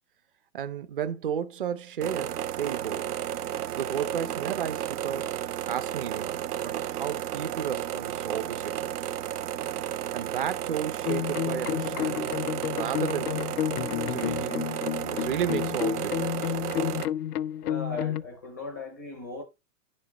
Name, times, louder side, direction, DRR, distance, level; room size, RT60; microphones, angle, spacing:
voice 1, 0.5-3.1 3.7-5.4 5.7-8.9 10.1-12.4 12.7-13.5 14.1-14.8 15.1-16.5, right 8 dB, 35° right, 0.6 m, -33 dB
sound 1, 2.0-17.0, right 11 dB, 90° right, 0.8 m, -33 dB
sound 2, 11.1-18.2, left 11 dB, 90° left, 0.6 m, -30 dB
voice 2, 17.6-19.4, left 3 dB, 15° left, 0.4 m, -38 dB
10.5 x 6.3 x 3.0 m
hypercardioid pair, 165°, 45 cm